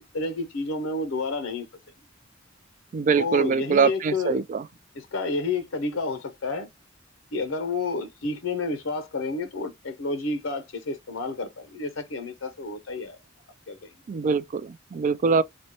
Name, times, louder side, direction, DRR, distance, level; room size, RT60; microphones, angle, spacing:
voice 1, 0.0-1.7 3.1-4.4 5.0-6.7 7.3-13.2 13.7-13.9, left 3 dB, 85° left, 0.6 m, -30 dB
voice 2, 2.9-4.6 14.1-15.4, right 5 dB, 40° right, 0.3 m, -23 dB
4.0 x 2.2 x 2.8 m
head